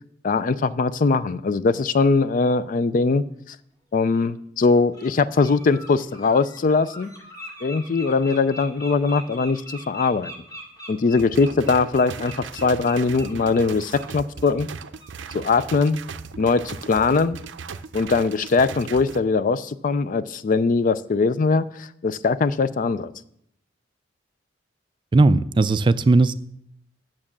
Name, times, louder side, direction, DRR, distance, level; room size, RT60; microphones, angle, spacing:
voice 1, 0.2-3.6 3.9-7.1 7.6-10.3 10.9-14.7 15.3-16.0 16.4-17.4 17.9-23.1, left 4 dB, 45° left, 15 dB, 0.4 m, -21 dB
Bird, 3.3-3.4 4.1-4.3 4.7-5.1 5.4-14.1 14.4-14.6 15.0-15.2, equal, 20° left, 1.7 m, -41 dB
sound 1, 11.2-19.2, right 5 dB, 85° right, 0.5 m, -38 dB
voice 2, 25.1-26.3, right 3 dB, 25° right, 14 dB, 0.3 m, -17 dB
8.9 x 6.1 x 7.2 m, 0.73 s
head